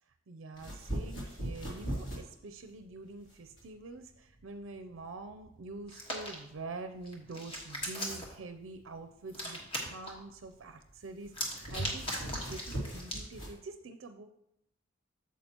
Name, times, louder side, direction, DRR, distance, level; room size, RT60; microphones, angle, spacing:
voice 1, 0.3-14.3, right 3 dB, 65° right, 8 dB, 0.5 m, -46 dB
sound 1, 0.5-13.6, right 1 dB, 65° left, 2.9 m, -42 dB
Hands, 5.9-6.3 7.1-8.3 9.3-10.1 11.3-13.3, equal, 25° left, 1.4 m, -38 dB
8.8 x 7.2 x 2.9 m, 0.79 s
head